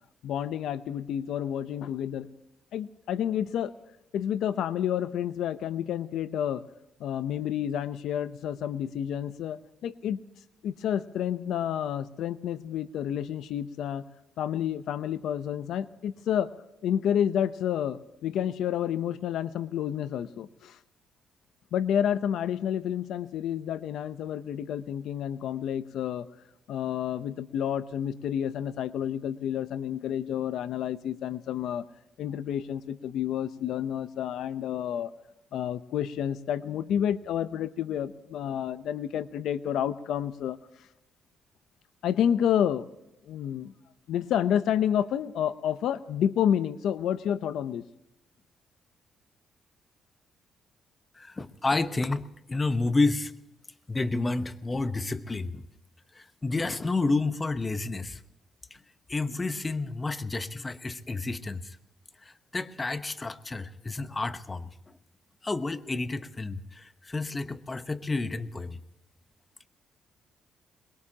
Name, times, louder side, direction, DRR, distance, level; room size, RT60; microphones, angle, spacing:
voice 1, 0.2-2.3 2.7-3.7 4.1-6.6 7.0-10.2 10.6-14.1 14.4-16.5 16.8-20.8 21.7-26.3 26.7-31.8 32.2-35.1 35.5-40.6 42.0-42.9 43.3-43.7 44.1-47.8, left 9 dB, 80° left, 13 dB, 0.7 m, -29 dB
voice 2, 51.1-53.3 53.9-55.6 56.1-58.2 58.7-58.8 59.1-61.8 62.2-64.7 65.4-68.8, left 3 dB, 25° left, 12 dB, 1.0 m, -30 dB
23.0 x 22.0 x 2.9 m, 0.91 s
cardioid pair, 90°, 0 cm